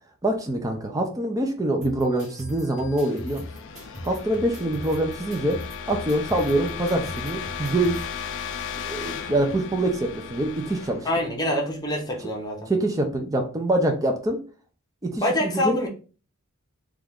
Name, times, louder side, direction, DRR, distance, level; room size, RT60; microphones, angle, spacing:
voice 1, 0.2-3.5 4.0-5.6 5.9-8.0 8.8-11.1 12.7-14.4 15.0-15.8, right 1 dB, 15° right, 0.4 m, -25 dB
sound 1, 1.8-8.0, left 1 dB, 35° right, 1.2 m, -40 dB
sound 2, 2.3-12.1, left 7 dB, 55° left, 0.4 m, -36 dB
voice 2, 11.0-12.7 15.2-15.9, left 1 dB, 15° left, 0.8 m, -25 dB
3.0 x 2.4 x 3.5 m
head